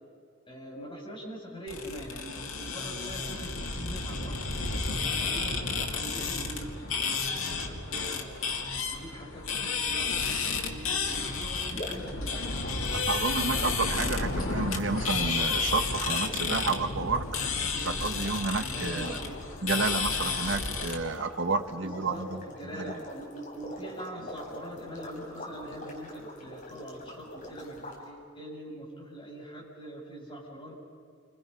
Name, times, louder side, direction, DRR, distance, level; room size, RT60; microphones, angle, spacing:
voice 1, 0.5-4.4 5.0-8.3 8.9-12.4 18.5-19.4 21.7-30.7, right 1 dB, 25° left, -3 dB, 7.5 m, -43 dB
sound 1, 1.7-21.0, left 4 dB, 90° left, 2.6 m, -31 dB
sound 2, 11.6-28.0, left 1 dB, 40° left, 5.1 m, -44 dB
voice 2, 12.9-17.3 17.8-19.2 19.6-22.4 22.8-22.9, right 4 dB, 65° right, 9 dB, 1.1 m, -30 dB
29.0 x 26.5 x 5.8 m, 2.1 s
head